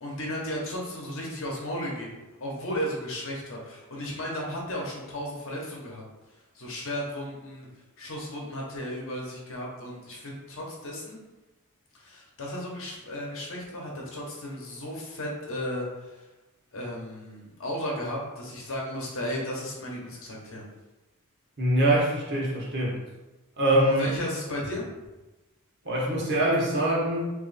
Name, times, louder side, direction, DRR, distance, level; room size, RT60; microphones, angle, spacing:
voice 1, 0.0-2.1 2.4-6.0 6.5-7.7 8.0-11.2 12.0-16.2 16.7-20.6 23.9-24.9, equal, 60° left, -2 dB, 0.9 m, -34 dB
voice 2, 21.6-23.0 23.6-24.1 25.8-27.3, right 1 dB, 50° right, -5 dB, 1.1 m, -24 dB
3.1 x 2.7 x 4.0 m, 1.1 s
head